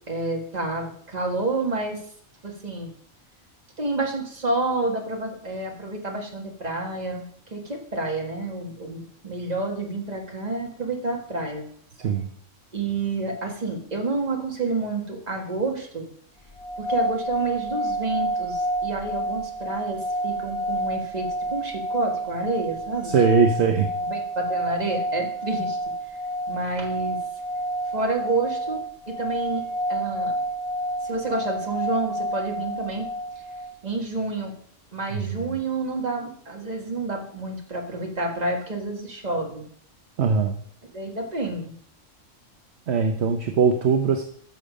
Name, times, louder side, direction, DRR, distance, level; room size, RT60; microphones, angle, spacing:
voice 1, 0.1-2.0 2.4-2.9 3.8-11.7 12.7-16.1 16.8-23.1 24.0-25.8 26.5-27.2 27.9-29.6 29.9-30.3 31.0-33.1 33.8-34.5 34.9-39.7 40.9-41.7, right 2 dB, 35° right, 1 dB, 1.9 m, -29 dB
voice 2, 12.0-12.3 23.0-23.9 35.1-35.6 40.2-40.6 42.9-44.2, right 5 dB, 60° right, 6 dB, 1.0 m, -21 dB
sound 1, 16.6-33.7, right 1 dB, 30° left, 0.6 m, -29 dB
12.5 x 6.8 x 5.2 m, 0.62 s
omnidirectional pair, 1.3 m